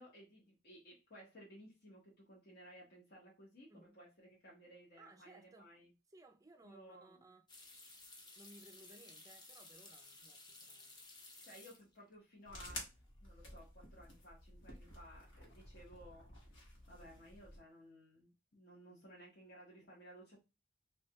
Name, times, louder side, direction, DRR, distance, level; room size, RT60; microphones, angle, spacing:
voice 1, 0.0-5.9 6.6-7.3 11.4-12.9 13.2-16.3 16.9-20.4, equal, 55° left, 0.9 m, -58 dB
voice 2, 5.0-5.7 6.1-7.5 8.4-11.1, right 2 dB, 20° right, 0.4 m, -61 dB
sound 1, 7.5-12.2 12.4-13.1 13.4-13.5 16.2-16.6 16.9-17.4, left 2 dB, 25° left, 0.7 m, -57 dB
sound 2, 12.5-17.6, left 1 dB, 80° left, 1.1 m, -52 dB
3.2 x 2.3 x 2.8 m
head